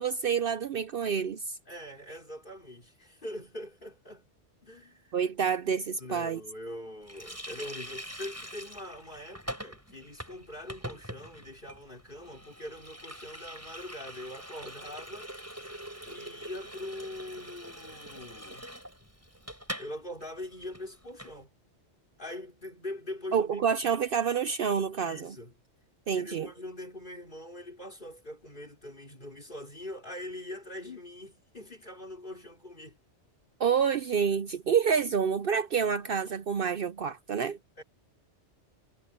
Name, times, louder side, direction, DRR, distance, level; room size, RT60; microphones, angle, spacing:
voice 1, 0.0-1.5 5.1-6.4 23.3-25.4 26.1-26.5 33.6-37.6, right 7 dB, 55° right, 0.8 m, -28 dB
voice 2, 1.7-4.3 4.6-5.2 6.0-15.3 16.0-18.7 19.8-21.5 22.2-23.6 25.1-25.5 26.1-33.0 37.8-37.9, left 1 dB, 45° left, 4.6 m, -43 dB
Water tap faucet, 7.1-19.9 20.2-20.3 20.6-21.3, equal, 10° right, 7.4 m, -44 dB
omnidirectional pair, 1.2 m